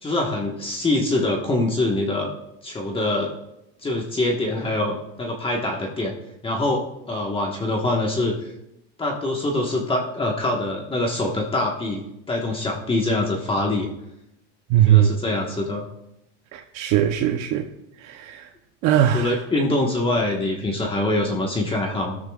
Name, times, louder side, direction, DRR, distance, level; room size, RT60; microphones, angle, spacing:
voice 1, 0.0-2.3 2.6-3.3 3.8-6.1 6.4-8.3 9.0-13.9 14.8-15.9 19.0-22.2, left 2 dB, 15° left, 1.4 m, -24 dB
voice 2, 14.7-15.1 16.5-17.6 18.0-18.5 18.8-19.3, right 11 dB, 50° right, 0.9 m, -19 dB
16.0 x 13.0 x 2.4 m
supercardioid pair, 130°, 35 cm